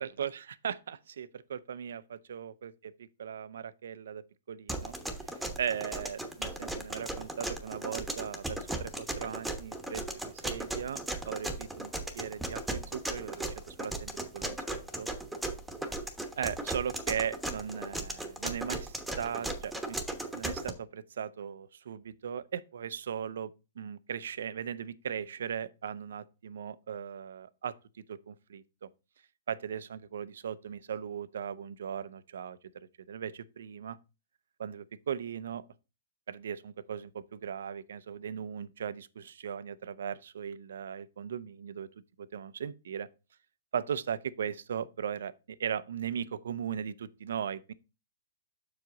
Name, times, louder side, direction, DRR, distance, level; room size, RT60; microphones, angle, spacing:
voice 1, 0.0-4.9 5.2-11.0 11.3-15.1 16.4-20.0 20.3-27.8 28.1-28.9 29.5-34.0 34.6-35.6 36.3-41.9 42.2-43.1 43.7-47.7, right 8 dB, 75° right, 0.5 m, -38 dB
sound 1, 4.7-20.7, right 2 dB, 5° right, 1.1 m, -36 dB
6.9 x 4.8 x 3.8 m
hypercardioid pair, 130°, 0 cm